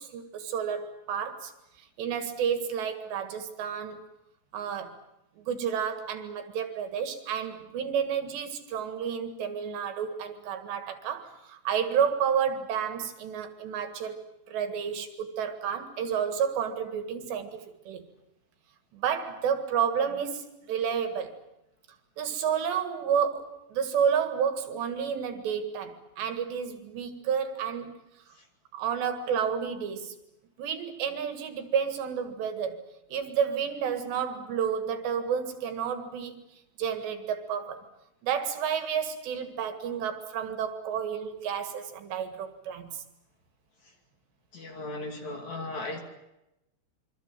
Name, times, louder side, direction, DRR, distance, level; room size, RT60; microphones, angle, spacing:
voice 1, 0.0-1.5 2.0-4.0 4.5-5.0 5.4-14.2 14.5-18.0 18.9-21.4 22.2-28.0 28.7-30.2 30.6-32.8 33.1-36.5 36.8-37.8 38.2-43.0, right 7 dB, 70° right, 8 dB, 4.0 m, -30 dB
voice 2, 44.5-46.0, left 2 dB, 45° left, 4 dB, 3.4 m, -37 dB
26.0 x 24.5 x 7.6 m, 0.91 s
omnidirectional pair, 5.4 m